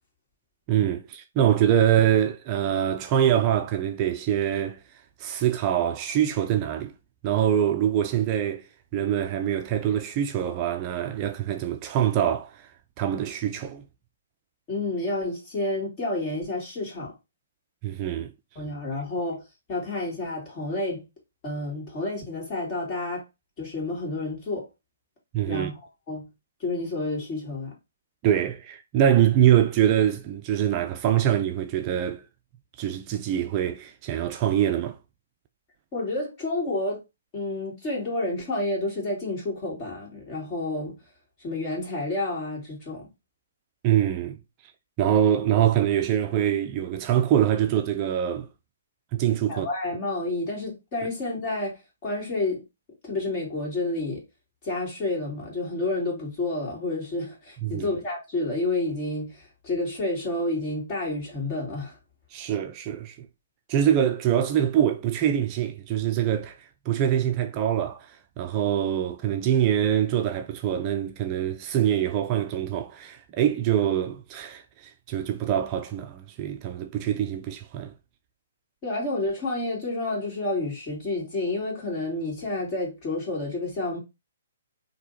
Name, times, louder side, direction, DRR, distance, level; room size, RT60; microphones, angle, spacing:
voice 1, 0.7-4.8 5.2-6.9 7.2-8.7 8.9-12.7 13.0-13.8 17.8-18.3 25.3-25.7 28.2-32.2 32.8-35.0 43.8-44.4 45.0-48.5 49.1-49.7 57.6-57.9 62.3-63.3 63.7-77.9, right 10 dB, 30° right, 0.4 m, -24 dB
voice 2, 14.7-17.1 18.5-19.4 19.7-21.1 21.4-23.2 23.6-24.7 25.5-25.8 26.1-26.3 26.6-27.7 35.9-37.0 37.3-41.0 41.4-43.1 49.5-52.6 53.0-54.2 54.6-62.0 78.8-84.0, left 2 dB, 30° left, 2.7 m, -30 dB
4.3 x 2.9 x 4.1 m
figure-of-eight pair, 125°, 0 cm